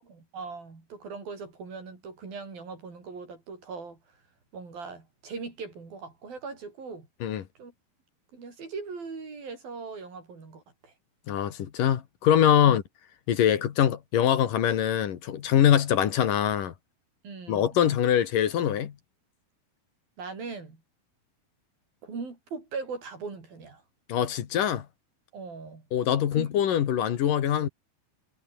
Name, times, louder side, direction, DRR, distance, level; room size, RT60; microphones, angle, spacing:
voice 1, 0.1-4.0 4.5-7.1 7.6-7.7 8.3-10.9 12.6-12.8 17.2-17.8 20.2-20.8 22.0-23.8 25.3-25.8 26.3-26.5, right 4 dB, 80° right, 8.4 m, -40 dB
voice 2, 11.3-12.8 13.3-16.7 17.5-18.9 24.1-24.9 25.9-27.7, left 10 dB, 70° left, 3.4 m, -23 dB
omnidirectional pair, 4.1 m